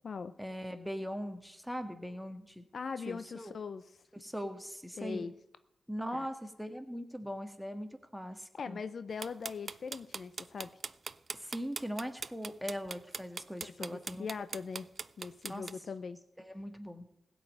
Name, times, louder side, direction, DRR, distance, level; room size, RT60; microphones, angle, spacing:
voice 1, 0.4-2.6 3.1-3.5 4.1-5.3 5.9-8.8 11.3-14.3 15.5-15.6 16.4-17.1, equal, ahead, 6 dB, 1.9 m, -40 dB
voice 2, 2.7-3.9 5.0-5.3 6.1-6.3 8.6-10.7 13.6-14.9 15.2-16.2, left 5 dB, 65° left, 13 dB, 0.6 m, -40 dB
sound 1, 9.2-15.7, right 4 dB, 55° right, 0.4 m, -40 dB
16.0 x 5.6 x 8.7 m, 0.84 s
supercardioid pair, 45°, 0 cm